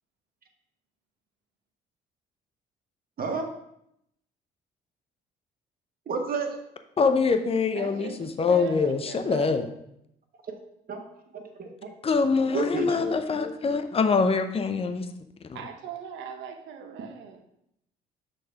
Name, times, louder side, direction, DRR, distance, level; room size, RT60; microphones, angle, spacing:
voice 1, 3.2-3.5 6.1-6.6 10.5-10.6 10.9-11.0 11.3-11.9 12.5-13.1, right 4 dB, 50° right, 3 dB, 1.4 m, -31 dB
voice 2, 7.0-9.7 12.0-15.1 15.5-15.6, left 4 dB, 30° left, 8 dB, 0.6 m, -24 dB
voice 3, 7.7-9.7 15.5-17.4, right 7 dB, 75° right, 5 dB, 1.0 m, -40 dB
6.5 x 3.2 x 5.7 m, 0.78 s
supercardioid pair, 65°, 20 cm